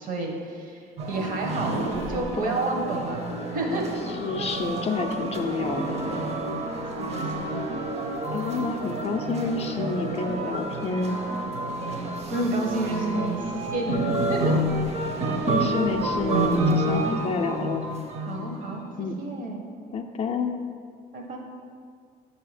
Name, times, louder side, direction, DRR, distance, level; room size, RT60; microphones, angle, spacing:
voice 1, 0.0-1.8 2.1-3.2 3.5-3.9 4.3-4.5 7.0-7.7 12.3-14.6 18.2-18.8 19.2-19.6 21.1-21.4, right 2 dB, 55° right, 1 dB, 1.0 m, -30 dB
sound 1, 1.0-18.8, right 1 dB, 40° right, 0.7 m, -29 dB
voice 2, 4.2-6.0 8.3-11.2 15.5-17.9 19.0-19.1 19.9-20.6, left 4 dB, 40° left, 3 dB, 0.4 m, -29 dB
6.9 x 2.8 x 4.9 m, 2.1 s
cardioid pair, 110°, 17 cm